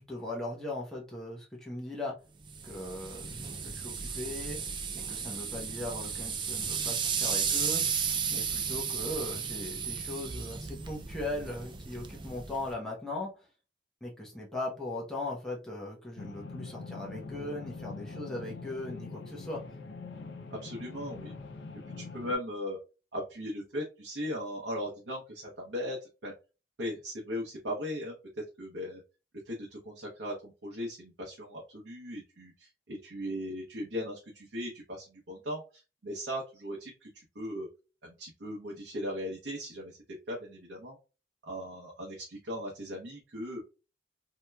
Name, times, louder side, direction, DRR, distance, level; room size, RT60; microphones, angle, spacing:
voice 1, 0.0-2.1 2.6-4.6 4.9-13.3 14.0-19.6, left 1 dB, 5° left, -4 dB, 0.8 m, -39 dB
sound 1, 2.5-12.7, right 6 dB, 25° right, 0.4 m, -34 dB
sound 2, 16.2-22.3, left 3 dB, 80° left, 0.5 m, -43 dB
voice 2, 20.6-21.3 22.0-22.8 23.1-26.3 26.8-29.0 29.4-37.1 37.3-37.7 38.0-40.0 40.3-41.0 41.4-43.6, equal, 80° right, -3 dB, 0.8 m, -38 dB
3.3 x 2.8 x 2.2 m, 0.32 s
head